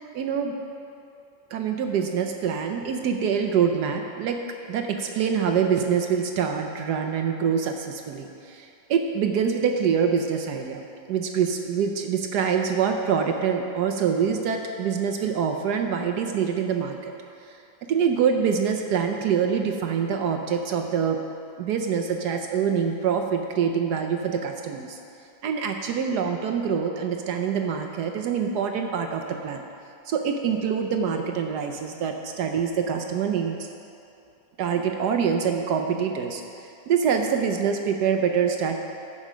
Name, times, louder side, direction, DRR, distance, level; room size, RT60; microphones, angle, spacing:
voice 1, 0.1-0.5 1.5-4.4 4.7-10.8 11.1-17.1 17.9-21.2 21.6-25.0 25.4-29.6 30.1-33.7 34.6-36.4 36.9-38.8, right 7 dB, 70° right, 4 dB, 1.1 m, -25 dB
14.5 x 5.4 x 5.0 m, 2.7 s
omnidirectional pair, 2.0 m